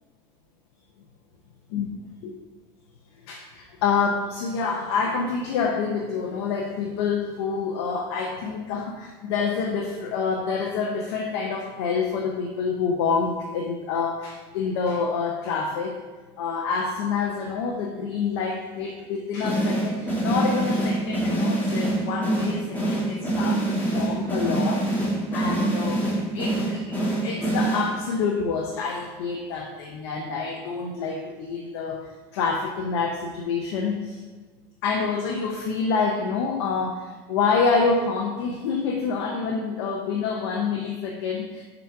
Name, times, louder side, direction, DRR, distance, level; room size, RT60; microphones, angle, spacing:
voice 1, 3.3-15.9 16.4-24.9 25.3-26.0 26.3-27.0 27.2-34.2 34.8-41.6, left 5 dB, 85° left, 0 dB, 0.8 m, -27 dB
sound 1, 19.4-28.2, right 1 dB, 15° left, 1.9 m, -25 dB
5.6 x 4.0 x 5.6 m, 1.3 s
supercardioid pair, 100°, 13 cm